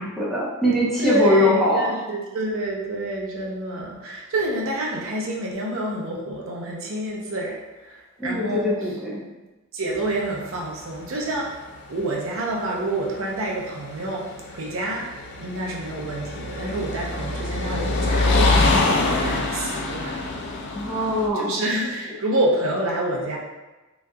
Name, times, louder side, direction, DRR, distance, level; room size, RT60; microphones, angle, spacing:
voice 1, 0.0-1.9 8.2-9.2 20.7-21.5, left 1 dB, ahead, -8 dB, 0.7 m, -22 dB
voice 2, 1.0-8.7 9.7-11.6 11.9-20.2 21.3-23.4, right 1 dB, 65° right, -2 dB, 0.6 m, -28 dB
sound 1, 9.9-21.3, left 2 dB, 55° left, 0.4 m, -25 dB
3.6 x 3.0 x 2.2 m, 1.1 s
head